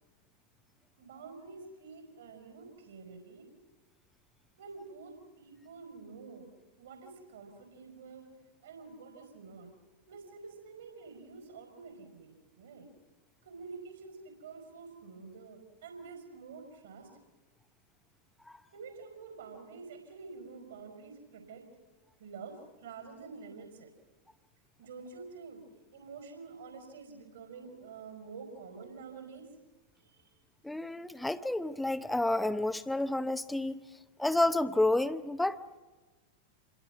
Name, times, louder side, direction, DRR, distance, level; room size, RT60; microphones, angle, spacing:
voice 1, 1.0-3.5 4.6-6.5 6.8-8.3 8.6-9.7 10.1-12.9 13.4-17.1 18.7-21.7 22.2-23.9 24.8-25.6 25.9-29.6 29.9-30.4, right 4 dB, 65° right, 4.8 m, -48 dB
voice 2, 30.6-33.8 34.2-35.6, left 2 dB, 5° left, 0.8 m, -30 dB
28.0 x 23.5 x 6.1 m
figure-of-eight pair, 90°, 0 cm